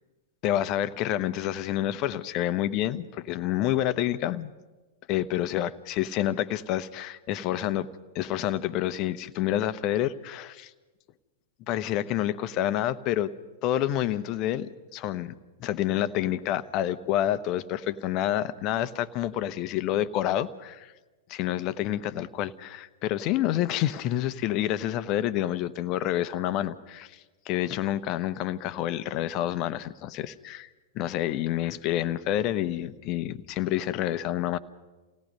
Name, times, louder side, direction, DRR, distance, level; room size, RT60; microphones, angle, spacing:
voice 1, 0.4-4.5 5.1-7.9 8.1-10.7 11.7-13.3 13.6-15.3 15.6-20.9 21.3-30.7 30.9-34.6, left 12 dB, 40° left, 13 dB, 1.0 m, -28 dB
29.0 x 17.5 x 5.4 m, 1.2 s
figure-of-eight pair, 100°, 0 cm